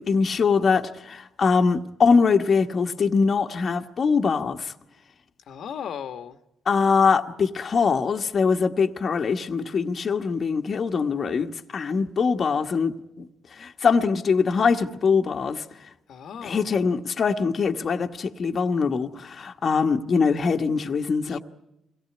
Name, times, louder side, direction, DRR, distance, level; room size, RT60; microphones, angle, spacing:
voice 1, 0.0-4.7 6.7-13.3 13.6-15.6 16.4-21.4, left 5 dB, 45° left, 1.2 m, -23 dB
voice 2, 5.5-6.4 16.1-16.7 21.3-21.4, left 8 dB, 70° left, 1.3 m, -36 dB
23.5 x 17.0 x 9.5 m
cardioid pair, 90°, 0 cm